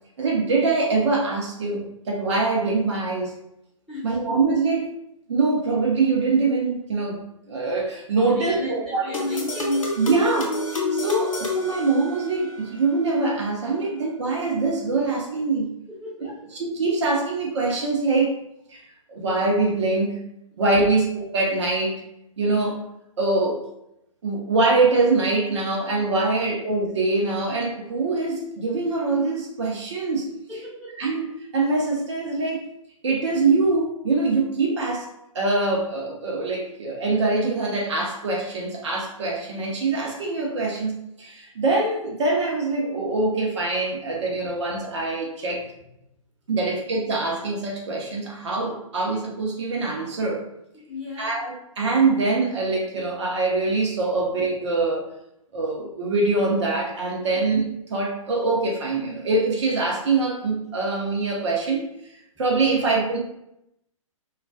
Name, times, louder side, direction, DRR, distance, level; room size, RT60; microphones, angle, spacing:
voice 1, 0.2-3.3 4.0-4.9 5.3-9.1 10.0-10.5 10.7-15.7 16.2-16.3 16.6-18.3 18.7-18.8 19.1-20.3 20.6-22.0 22.4-22.8 23.2-23.6 24.2-30.3 31.0-31.3 31.5-32.7 33.0-35.1 35.3-40.9 41.2-45.6 46.5-50.4 51.2-51.5 51.8-55.1 55.5-61.9 62.4-63.2, right 3 dB, 55° right, -2 dB, 0.6 m, -23 dB
voice 2, 3.9-4.5 8.3-10.4 15.9-16.6 26.3-26.5 30.5-31.0 44.2-44.3 46.5-46.6 50.9-51.4 57.3-57.4, left 2 dB, ahead, -10 dB, 0.8 m, -38 dB
sound 1, 9.1-12.6, left 2 dB, 75° left, 0.6 m, -27 dB
2.2 x 2.2 x 2.4 m, 0.80 s
figure-of-eight pair, 120°, 17 cm